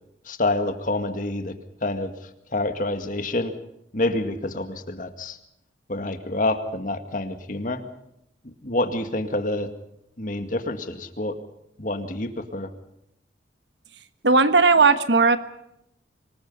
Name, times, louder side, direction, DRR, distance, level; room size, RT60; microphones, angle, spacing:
voice 1, 0.3-1.5 1.8-3.6 3.9-5.4 5.9-7.8 8.4-9.7 10.2-11.4 11.8-12.7, left 2 dB, 45° left, 7 dB, 2.1 m, -27 dB
voice 2, 14.2-15.4, right 4 dB, 70° right, 11 dB, 1.3 m, -16 dB
25.5 x 20.5 x 5.6 m, 0.82 s
head